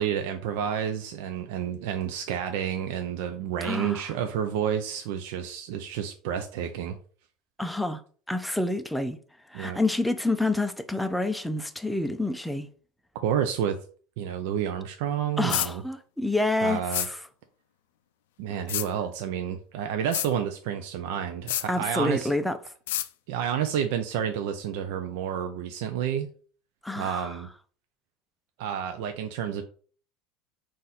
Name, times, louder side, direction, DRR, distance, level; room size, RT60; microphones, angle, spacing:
voice 1, 0.0-7.0 9.5-9.8 13.2-13.8 14.2-15.8 16.6-17.1 18.4-22.3 23.3-26.3 27.0-27.5 28.6-29.6, right 9 dB, 75° right, 0.4 m, -30 dB
voice 2, 3.6-4.0 7.6-8.0 8.3-9.2 9.5-12.7 15.4-17.2 21.7-22.6 26.8-27.3, left 2 dB, 5° left, 0.4 m, -28 dB
sound 1, 15.5-15.7 16.9-17.1 18.7-18.9 20.1-20.3 21.5-21.7 22.9-23.1, left 14 dB, 85° left, 0.3 m, -28 dB
4.0 x 2.5 x 4.0 m
supercardioid pair, 120°, 0 cm